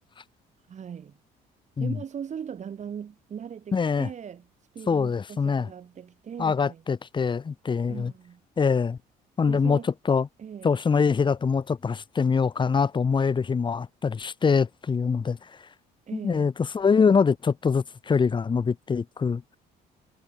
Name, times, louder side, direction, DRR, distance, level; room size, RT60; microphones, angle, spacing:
voice 1, 0.7-1.2 1.8-4.5 4.7-6.8 7.9-8.4 9.5-9.9 10.4-10.8 16.1-16.5, right 8 dB, 45° right, 5.8 m, -39 dB
voice 2, 3.7-4.1 4.9-5.7 6.4-8.1 8.6-9.0 9.4-9.8 10.1-10.3 10.6-15.4 16.1-19.4, left 5 dB, 30° left, 1.5 m, -24 dB
cardioid pair, 110°, 17 cm